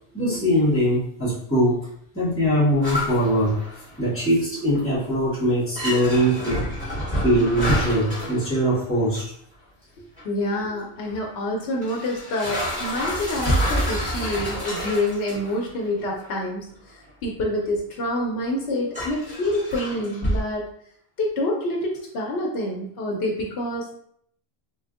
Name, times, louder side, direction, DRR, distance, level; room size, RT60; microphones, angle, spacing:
voice 1, 0.1-1.8 2.1-3.6 4.0-6.9 7.2-9.2, equal, 10° left, -9 dB, 1.2 m, -22 dB
sound 1, 2.8-4.3 4.6-5.0 5.4-5.5 5.8-9.2 10.2-10.3 11.1-11.2 11.8-15.6 16.0-16.3 17.1-17.2 18.4-18.5 18.9-20.4, equal, 5° right, 1.4 m, -28 dB
voice 2, 10.2-16.6 17.2-20.7 21.2-24.0, left 1 dB, 70° left, -1 dB, 0.8 m, -27 dB
3.2 x 2.5 x 2.4 m, 0.66 s
omnidirectional pair, 1.1 m